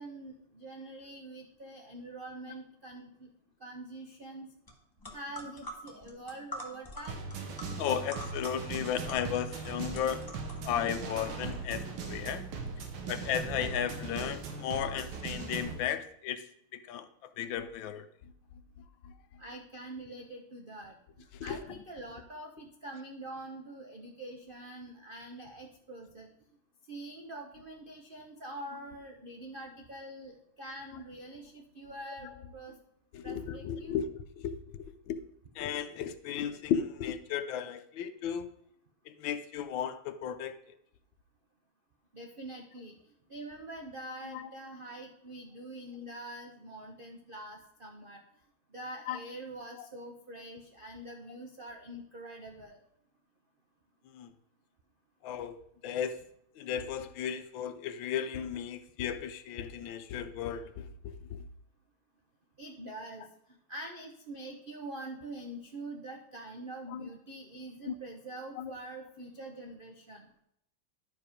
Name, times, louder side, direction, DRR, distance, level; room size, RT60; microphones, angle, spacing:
voice 1, 0.0-3.3 3.6-4.5 5.1-7.2 19.4-26.3 26.9-32.8 33.2-34.0 42.1-42.9 43.3-48.2 48.7-52.8 62.6-70.3, right 1 dB, 70° right, 2 dB, 0.5 m, -45 dB
sound 1, 4.7-4.8 5.0-11.6, left 1 dB, 15° left, 1.0 m, -46 dB
sound 2, 7.1-15.8, right 4 dB, 85° right, 1.9 m, -39 dB
voice 2, 7.8-10.2 10.6-12.4 13.1-16.4 16.7-18.0 19.0-19.1 21.4-21.6 32.2-32.3 33.1-34.1 34.4-35.2 35.6-38.5 39.1-40.6 44.2-44.5 49.1-49.2 49.8-49.9 54.1-54.3 55.2-56.2 56.6-61.4 66.9-67.1 67.9-68.0 68.6-68.7, left 9 dB, 75° left, 11 dB, 1.4 m, -35 dB
11.0 x 5.0 x 5.0 m, 0.75 s
omnidirectional pair, 2.3 m